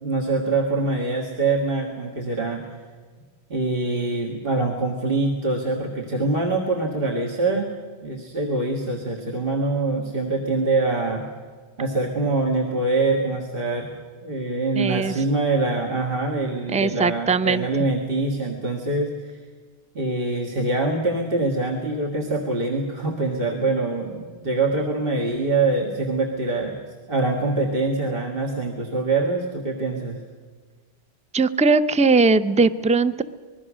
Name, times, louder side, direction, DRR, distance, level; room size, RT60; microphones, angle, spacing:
voice 1, 0.0-2.6 3.5-7.7 8.0-11.2 11.8-13.9 14.2-19.4 19.9-26.8 27.1-30.2, right 3 dB, 55° right, 0 dB, 2.1 m, -24 dB
voice 2, 14.8-15.2 16.7-17.6 31.3-33.2, right 4 dB, 10° right, 13 dB, 0.4 m, -19 dB
26.0 x 21.0 x 6.3 m, 1.5 s
omnidirectional pair, 1.1 m